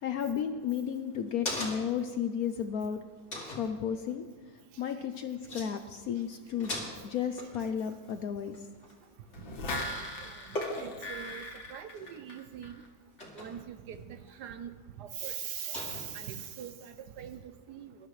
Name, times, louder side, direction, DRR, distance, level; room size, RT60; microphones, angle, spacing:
voice 1, 0.0-3.0 3.5-4.2 4.8-6.7 7.0-8.6, left 8 dB, 65° left, 8 dB, 0.9 m, -33 dB
sound 1, 0.7-2.1 2.5-2.6 3.3-3.7 5.1-5.2 5.5-5.7 5.9-6.2 6.5-9.3 9.7-10.1 10.5-11.1 11.9-12.3 13.2-13.6 14.3-14.4 15.7-16.5, left 1 dB, 40° left, 3.0 m, -39 dB
sound 2, 9.3-12.9 13.2-13.3, left 1 dB, 85° left, 2.2 m, -39 dB
voice 2, 10.2-12.8 13.3-14.7 15.0-18.0, right 9 dB, 70° right, 9 dB, 1.2 m, -42 dB
21.0 x 12.0 x 3.2 m, 1.4 s
omnidirectional pair, 2.0 m